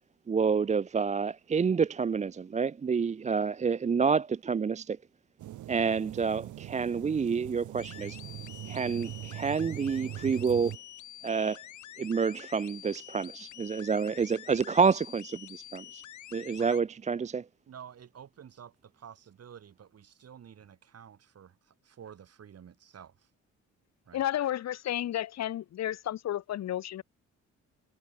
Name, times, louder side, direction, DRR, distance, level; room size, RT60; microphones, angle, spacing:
voice 1, 0.3-5.0 5.7-8.2 8.6-10.7 11.2-11.6 12.0-16.0 16.3-17.4, right 5 dB, 25° right, 0.5 m, -28 dB
sound 1, 5.4-10.8, right 14 dB, 75° right, 1.5 m, -42 dB
sound 2, 7.8-16.8, left 12 dB, 75° left, 4.5 m, -48 dB
voice 2, 17.7-23.3 24.1-24.2, right 8 dB, 55° right, 3.9 m, -50 dB
voice 3, 24.1-27.0, left 12 dB, 60° left, 0.9 m, -32 dB
cardioid pair, 90°, 30 cm